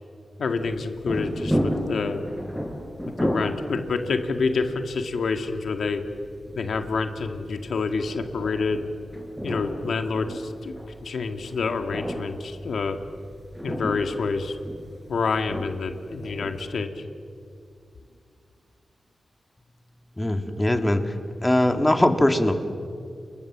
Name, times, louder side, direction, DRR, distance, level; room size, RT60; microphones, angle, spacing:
voice 1, 0.4-2.2 3.1-6.0 6.5-8.8 9.4-10.7 11.0-13.0 13.6-14.6 15.1-17.1, left 4 dB, 80° left, 6 dB, 2.0 m, -27 dB
sound 1, 0.6-16.8, equal, ahead, 5.5 m, -34 dB
voice 2, 20.2-21.1 21.4-22.5, left 1 dB, 15° left, 7 dB, 2.1 m, -21 dB
29.5 x 22.5 x 7.4 m, 2.3 s
cardioid pair, 75°, 0 cm